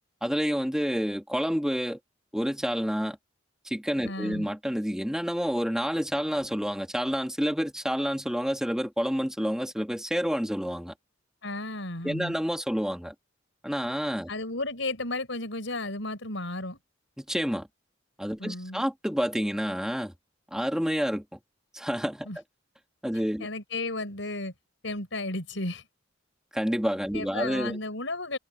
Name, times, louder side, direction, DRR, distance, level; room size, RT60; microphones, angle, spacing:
voice 1, 0.2-2.0 2.3-3.2 3.6-10.9 12.0-13.1 13.6-14.3 17.2-17.7 18.2-20.1 20.5-21.4 21.7-22.3 23.0-23.5 26.5-27.8, equal, 5° right, 2.4 m, -29 dB
voice 2, 4.0-4.5 11.4-12.4 14.3-16.8 18.4-18.8 22.3-22.4 23.4-24.5 24.8-25.8 27.1-28.4, left 2 dB, 75° left, 5.4 m, -33 dB
head